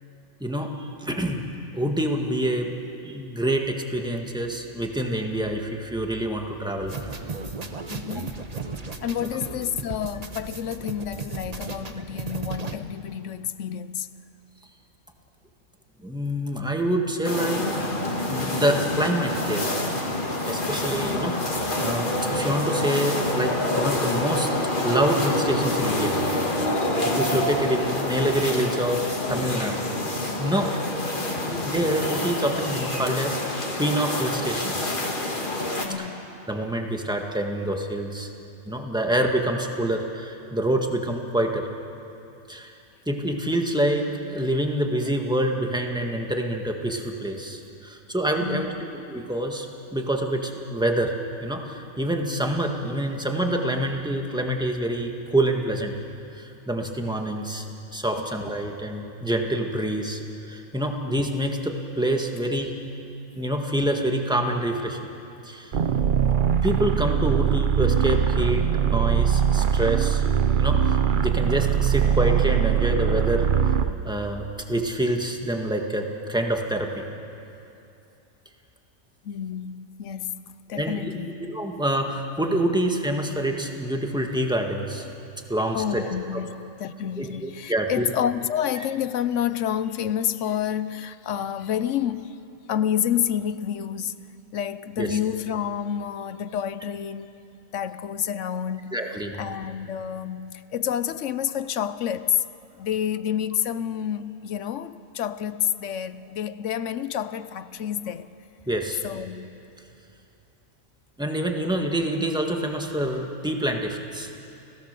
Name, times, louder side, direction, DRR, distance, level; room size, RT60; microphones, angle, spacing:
voice 1, 0.4-2.8 3.0-7.1 16.0-17.6 18.3-19.6 20.5-21.3 21.8-24.5 24.7-26.1 26.4-29.8 30.4-30.9 31.5-35.0 36.5-38.3 38.6-41.7 42.5-42.7 43.1-51.1 51.4-55.9 56.3-57.6 57.9-60.2 60.5-62.7 63.4-65.0 65.4-65.7 66.3-70.3 70.6-73.7 74.0-77.0 80.8-81.0 81.4-85.1 85.5-86.0 87.2-88.1 95.0-95.2 98.9-99.4 108.7-109.0 111.2-114.3, right 1 dB, 5° right, 1.7 m, -26 dB
sound 1, 6.9-12.7, right 4 dB, 30° right, 1.1 m, -35 dB
voice 2, 7.9-8.4 9.0-14.1 20.9-21.3 24.5-24.6 26.8-27.1 35.8-36.3 48.4-48.8 58.2-58.3 63.3-63.4 79.2-80.4 80.7-81.3 85.7-92.4 92.7-94.2 94.5-97.3 97.7-102.4 102.8-108.3 109.0-109.6, left 9 dB, 65° left, 1.0 m, -29 dB
sound 2, 17.2-35.8, left 1 dB, 35° left, 2.3 m, -27 dB
sound 3, 65.7-74.0, right 8 dB, 45° right, 0.7 m, -22 dB
30.0 x 17.0 x 6.8 m
omnidirectional pair, 1.4 m